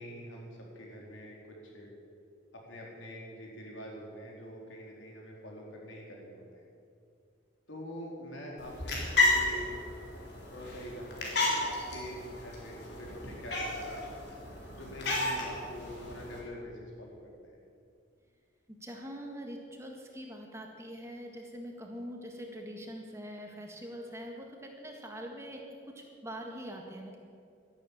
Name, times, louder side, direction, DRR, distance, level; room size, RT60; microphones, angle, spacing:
voice 1, 0.0-1.9 2.5-6.6 7.7-9.7 10.5-14.1 14.7-17.6, equal, 85° left, -2 dB, 4.1 m, -45 dB
sound 1, 8.6-16.4, left 2 dB, 60° left, 3.9 m, -33 dB
voice 2, 18.7-27.2, equal, 15° right, 1 dB, 1.7 m, -43 dB
12.5 x 12.0 x 8.8 m, 2.4 s
head